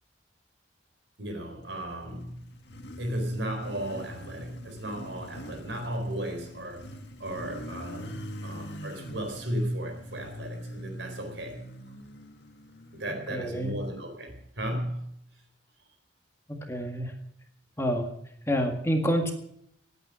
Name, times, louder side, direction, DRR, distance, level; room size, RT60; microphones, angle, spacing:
voice 1, 1.2-2.5 3.0-11.6 12.9-15.1, right 1 dB, 70° right, 4.2 m, -35 dB
Motorcycle, 1.8-14.5, equal, 60° left, 1.9 m, -44 dB
voice 2, 13.3-13.7 16.7-17.1 17.8-18.1 18.5-19.3, equal, 15° left, 1.8 m, -27 dB
19.5 x 9.0 x 6.3 m
head